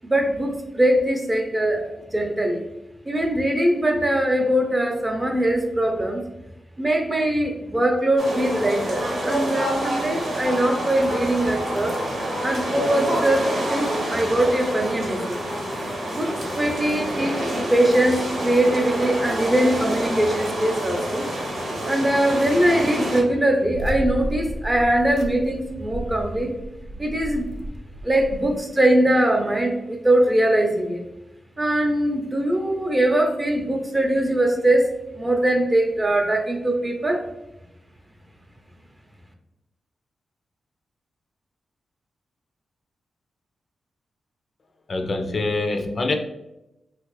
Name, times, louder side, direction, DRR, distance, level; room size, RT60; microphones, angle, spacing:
voice 1, 0.0-2.6 3.1-6.2 6.8-12.0 12.4-15.4 16.1-17.4 17.7-21.3 21.9-26.5 27.0-27.5 28.0-31.0 31.6-37.2, right 1 dB, 20° right, 3 dB, 0.6 m, -21 dB
sound 1, 8.2-23.2, right 1 dB, 75° right, 1.0 m, -27 dB
sound 2, 23.7-28.6, right 1 dB, 90° right, 0.5 m, -33 dB
voice 2, 44.9-46.1, left 2 dB, 45° left, 5 dB, 0.3 m, -24 dB
3.2 x 2.4 x 3.1 m, 0.92 s
cardioid pair, 85°, 0 cm